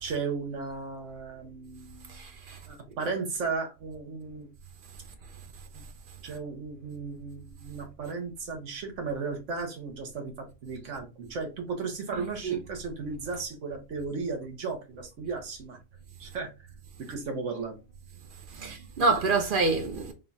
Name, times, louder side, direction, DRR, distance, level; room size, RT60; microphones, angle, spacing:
voice 1, 0.0-2.2 2.7-4.5 5.7-5.8 6.2-15.8 16.2-16.5 17.0-17.8 18.5-18.7, right 4 dB, 75° right, 1.3 m, -35 dB
voice 2, 2.1-2.6 12.1-12.6 18.5-20.1, right 3 dB, 55° right, 0.7 m, -27 dB
3.7 x 2.4 x 3.9 m
omnidirectional pair, 1.3 m